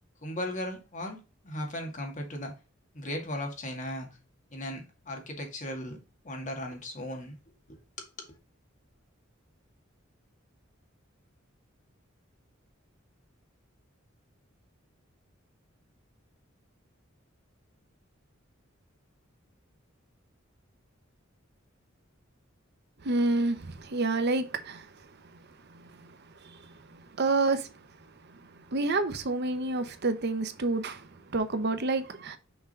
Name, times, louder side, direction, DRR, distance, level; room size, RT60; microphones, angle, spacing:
voice 1, 0.2-2.6 2.9-4.1 4.5-6.0 6.2-7.3 7.7-8.4, left 1 dB, 40° left, 1.9 m, -37 dB
voice 2, 23.0-24.9 26.0-26.1 26.4-26.7 27.2-27.7 28.3-28.4 28.7-32.4, right 3 dB, 55° right, 0.8 m, -28 dB
6.0 x 3.8 x 5.4 m
head